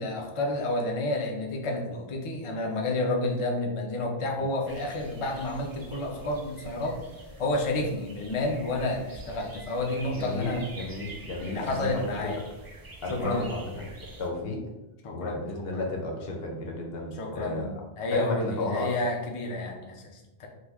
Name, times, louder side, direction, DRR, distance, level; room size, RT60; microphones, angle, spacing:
voice 1, 0.0-7.0 7.4-10.6 11.4-12.4 13.1-13.5 15.0-15.8 17.1-20.5, left 2 dB, 45° left, 1 dB, 0.5 m, -30 dB
sound 1, 4.7-14.3, right 2 dB, 40° right, 0.3 m, -46 dB
voice 2, 10.1-12.3 13.0-13.7 14.2-14.6 15.1-17.7 18.1-18.9, left 2 dB, 75° left, 0 dB, 0.9 m, -33 dB
3.0 x 2.2 x 3.5 m, 1.0 s
omnidirectional pair, 1.0 m